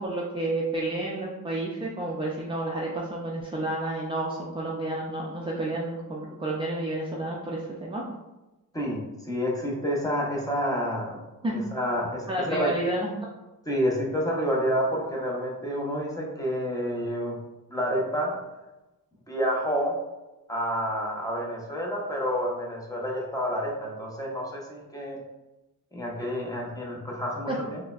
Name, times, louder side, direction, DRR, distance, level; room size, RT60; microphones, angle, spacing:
voice 1, 0.0-8.0 11.4-11.6 12.3-13.1 27.5-27.6, right 2 dB, 15° right, -4 dB, 0.4 m, -30 dB
voice 2, 8.7-11.2 11.5-12.7 13.7-17.4 17.7-18.4 19.3-20.0 20.5-25.2 25.9-27.8, equal, 10° left, -2 dB, 0.8 m, -29 dB
4.3 x 2.1 x 2.4 m, 1.0 s
cardioid pair, 100°, 35 cm